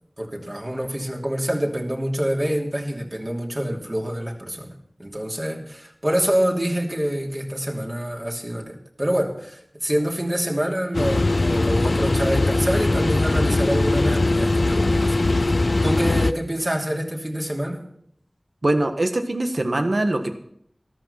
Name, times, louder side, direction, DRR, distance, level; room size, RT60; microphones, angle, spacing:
voice 1, 0.2-4.7 5.0-15.3 15.8-17.8, equal, 35° right, 0 dB, 2.9 m, -26 dB
sound 1, 10.9-16.3, left 2 dB, 80° left, 0.5 m, -20 dB
voice 2, 18.6-20.3, right 1 dB, 75° right, 6 dB, 1.5 m, -22 dB
13.5 x 12.5 x 5.8 m, 0.70 s
wide cardioid pair, 45°, 0 cm